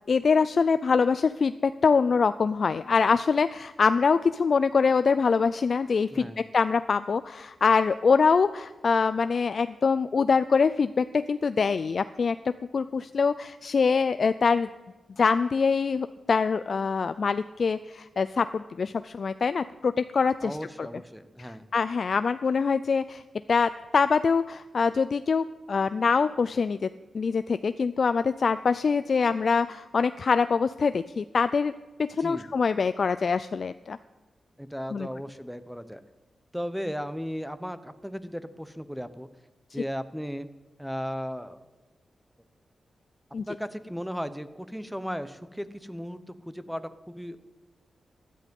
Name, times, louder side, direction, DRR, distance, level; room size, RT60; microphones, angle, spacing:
voice 1, 0.1-12.4 12.7-14.7 15.2-20.6 21.4-21.5 21.7-23.2 23.5-26.9 27.1-31.7 32.0-34.0 34.9-35.1 43.3-43.4, left 5 dB, 60° left, 12 dB, 0.4 m, -24 dB
voice 2, 6.1-6.4 20.4-21.6 32.2-32.5 34.6-36.0 36.5-39.3 39.7-40.5 40.8-41.6 43.5-47.4, equal, ahead, 13 dB, 0.9 m, -36 dB
16.0 x 11.0 x 5.4 m, 1.2 s
cardioid pair, 80°, 0 cm